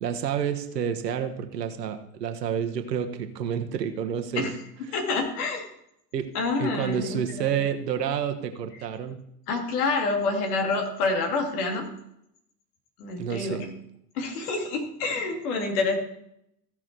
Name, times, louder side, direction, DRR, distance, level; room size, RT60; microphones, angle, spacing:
voice 1, 0.0-4.5 6.1-6.3 6.6-9.2 13.2-13.6, right 8 dB, 80° right, 7 dB, 1.3 m, -29 dB
voice 2, 4.9-5.7 6.3-7.2 9.5-11.9 13.0-13.7 14.1-16.0, left 3 dB, 65° left, 2 dB, 2.7 m, -27 dB
15.5 x 6.1 x 4.5 m, 0.76 s
hypercardioid pair, 80°, 48 cm